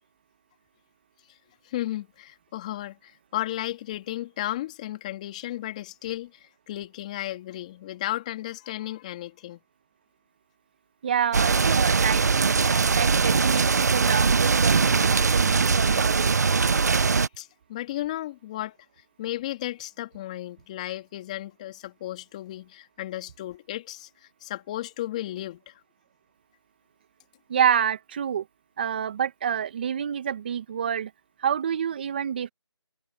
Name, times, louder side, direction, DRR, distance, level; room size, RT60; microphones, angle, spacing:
voice 1, 1.6-9.6 16.8-18.8 19.2-24.1 24.4-25.7, left 14 dB, 15° left, 3.2 m, -34 dB
voice 2, 11.0-16.4 27.5-28.5 28.8-31.1 31.4-32.5, right 8 dB, 20° right, 1.7 m, -28 dB
sound 1, 11.3-17.3, right 5 dB, 35° right, 1.1 m, -21 dB
figure-of-eight pair, 170°, 15 cm